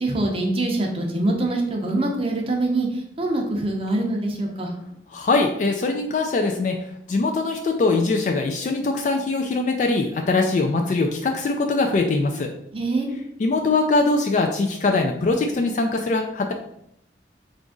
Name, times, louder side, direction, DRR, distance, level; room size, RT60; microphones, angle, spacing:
voice 1, 0.0-2.9 3.2-4.7 12.7-13.1, right 2 dB, 30° right, 1 dB, 0.6 m, -24 dB
voice 2, 5.1-6.8 7.1-12.5 13.4-16.5, left 3 dB, 45° left, 3 dB, 0.3 m, -22 dB
3.9 x 2.5 x 3.6 m, 0.75 s
head